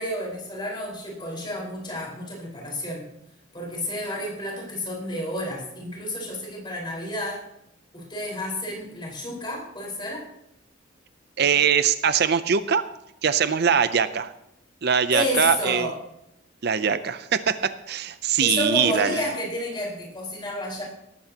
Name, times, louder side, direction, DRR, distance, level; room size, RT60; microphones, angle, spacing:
voice 1, 0.0-3.0 3.5-7.4 7.9-10.3 15.1-16.0 18.4-20.8, left 1 dB, 25° left, -2 dB, 4.6 m, -30 dB
voice 2, 11.4-12.8 13.2-14.3 14.8-15.9 16.6-19.2, right 7 dB, 55° right, 12 dB, 0.6 m, -22 dB
18.0 x 14.0 x 2.9 m, 0.81 s
head